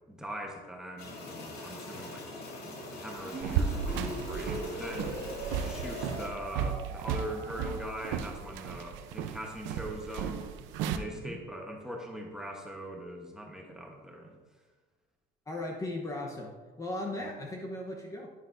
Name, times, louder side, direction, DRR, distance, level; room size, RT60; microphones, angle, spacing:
voice 1, 0.1-2.3 2.6-5.2 5.6-10.4 10.9-14.3, right 1 dB, 5° right, 0 dB, 1.0 m, -41 dB
sound 1, 1.0-6.3, left 2 dB, 60° left, 2.2 m, -43 dB
sound 2, 3.2-8.0, right 2 dB, 35° right, 2.6 m, -41 dB
sound 3, 3.4-11.0, right 7 dB, 90° right, 0.7 m, -35 dB
voice 2, 15.5-18.3, left 1 dB, 15° left, 0 dB, 1.0 m, -37 dB
10.0 x 10.0 x 2.6 m, 1.4 s
cardioid pair, 160°, 19 cm